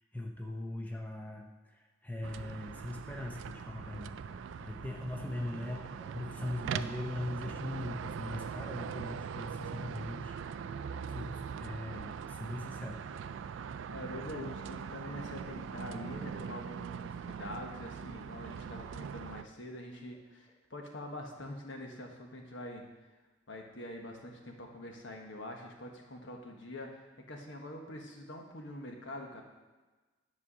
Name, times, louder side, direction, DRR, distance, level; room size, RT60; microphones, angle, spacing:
voice 1, 0.1-10.4 11.1-13.0, left 1 dB, 10° left, 1 dB, 0.7 m, -40 dB
sound 1, 2.2-19.4, right 7 dB, 80° right, 0.3 m, -41 dB
voice 2, 13.9-22.8 23.5-29.4, left 1 dB, 75° left, 2 dB, 1.4 m, -45 dB
9.9 x 4.7 x 6.2 m, 1.2 s
head